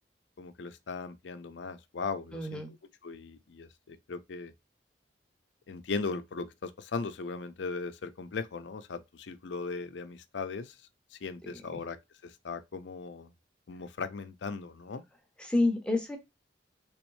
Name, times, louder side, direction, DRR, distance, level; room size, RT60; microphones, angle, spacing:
voice 1, 0.4-2.6 3.0-4.5 5.7-10.8 11.1-12.0 12.2-13.3 13.7-15.0, left 4 dB, 75° left, 0.5 m, -38 dB
voice 2, 2.3-2.7 11.7-11.8 15.4-16.2, left 2 dB, 5° left, 0.6 m, -28 dB
3.5 x 3.1 x 3.0 m
head